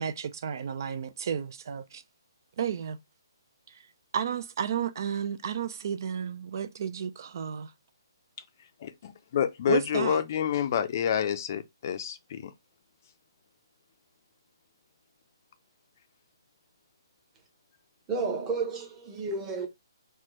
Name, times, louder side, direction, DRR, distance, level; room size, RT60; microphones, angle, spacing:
voice 1, 0.0-2.0 2.6-3.0 3.7-7.7 9.7-10.2, right 8 dB, 50° right, 0.3 m, -32 dB
voice 2, 8.8-12.5, left 9 dB, 40° left, 0.4 m, -28 dB
voice 3, 18.1-19.7, right 4 dB, 15° right, 0.9 m, -31 dB
4.3 x 2.2 x 3.0 m
hypercardioid pair, 155°, 2 cm